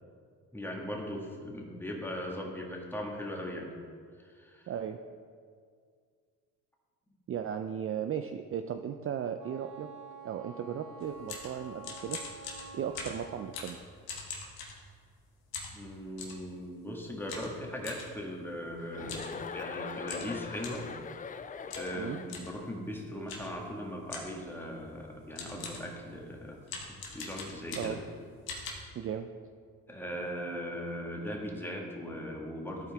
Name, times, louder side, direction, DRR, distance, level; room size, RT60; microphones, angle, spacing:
voice 1, 0.5-3.7 4.2-4.7 15.7-20.8 21.7-26.6 27.1-28.0 28.6-28.9 29.9-32.9, equal, 5° left, -1 dB, 1.8 m, -39 dB
voice 2, 4.7-5.0 7.3-9.9 10.2-12.2 12.7-13.8 21.9-22.2 27.8-28.0 29.0-29.3, right 8 dB, 40° right, 7 dB, 0.4 m, -36 dB
Wind instrument woodwind instrument, 9.4-13.7, right 3 dB, 75° right, 0.9 m, -48 dB
sound 1, 11.0-15.2 15.5-16.4 17.3-18.1 19.0-19.3 19.6-19.7 20.1-20.9 21.7-22.0 22.3-22.6 23.3-23.6 24.1-24.4 25.0-25.1 25.4-25.9 26.6-28.1 28.5-28.7, left 4 dB, 85° left, 1.5 m, -42 dB
Chuckle chortle, 18.9-22.7, left 6 dB, 25° left, 0.4 m, -41 dB
13.5 x 4.6 x 3.5 m, 2.1 s
supercardioid pair, 75°, 36 cm